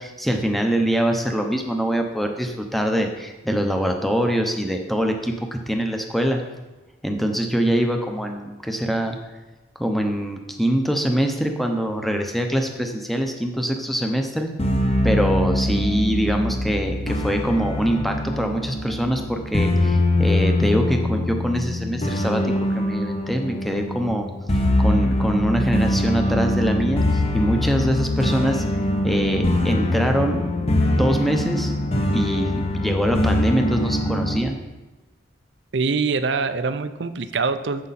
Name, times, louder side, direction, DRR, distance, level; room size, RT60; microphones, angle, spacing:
voice 1, 0.0-6.4 7.0-9.2 9.8-14.5 15.0-24.3 24.8-28.6 29.0-30.4 30.9-31.7 32.1-34.6, equal, ahead, 3 dB, 0.7 m, -24 dB
sound 1, 14.6-34.4, left 1 dB, 30° left, 0.9 m, -23 dB
voice 2, 35.7-37.9, right 4 dB, 65° right, 11 dB, 0.5 m, -24 dB
9.6 x 7.5 x 4.2 m, 1.1 s
head